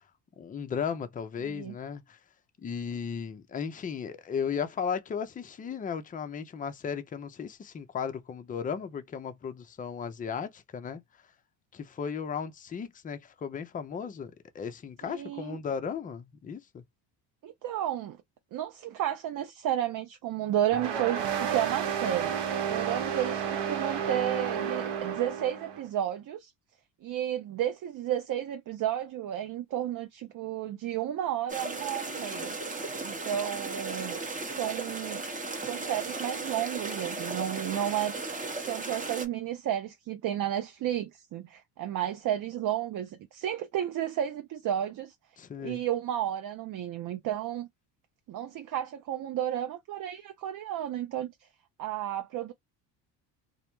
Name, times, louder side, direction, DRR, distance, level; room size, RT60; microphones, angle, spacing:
voice 1, 0.4-2.2 2.6-11.0 11.7-16.8 45.4-45.8, left 6 dB, 20° left, 0.4 m, -35 dB
voice 2, 1.4-1.7 15.0-15.6 17.4-18.2 18.5-26.5 27.0-32.5 33.0-35.2 35.6-38.2 38.7-45.1 45.6-47.7 48.3-51.5 51.8-52.5, right 11 dB, 45° right, 0.5 m, -32 dB
sound 1, 20.7-25.8, right 8 dB, 60° right, 0.9 m, -31 dB
sound 2, 31.5-39.3, right 3 dB, 15° right, 0.8 m, -36 dB
2.1 x 2.1 x 2.9 m
supercardioid pair, 75°, 48 cm